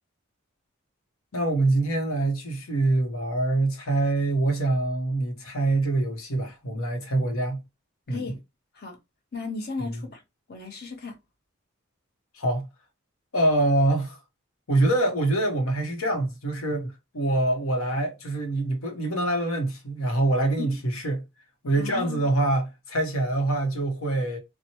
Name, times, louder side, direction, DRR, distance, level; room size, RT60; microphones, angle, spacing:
voice 1, 1.3-7.6 8.1-8.2 9.8-10.0 12.3-12.7 13.3-14.2 14.7-21.2 21.6-24.4, right 2 dB, 90° left, 0.9 m, -25 dB
voice 2, 8.1-8.4 8.7-9.0 9.3-10.2 10.5-11.1 20.6-20.8 21.8-22.3, left 4 dB, 50° left, 0.8 m, -35 dB
2.9 x 2.1 x 2.8 m
head